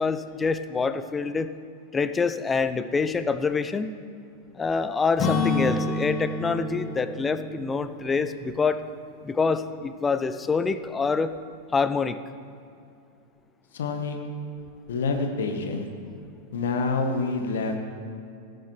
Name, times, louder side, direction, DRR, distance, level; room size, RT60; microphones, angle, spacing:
voice 1, 0.0-1.5 1.9-3.9 4.5-8.8 9.2-11.4 11.7-12.2, left 4 dB, 15° left, 12 dB, 0.5 m, -26 dB
Acoustic guitar / Strum, 5.2-9.1, left 3 dB, 30° left, 1.2 m, -29 dB
voice 2, 13.7-14.2 14.9-15.9 16.5-17.8, left 4 dB, 60° left, 5 dB, 1.1 m, -27 dB
17.5 x 9.1 x 3.2 m, 2.5 s
figure-of-eight pair, 90°, 0 cm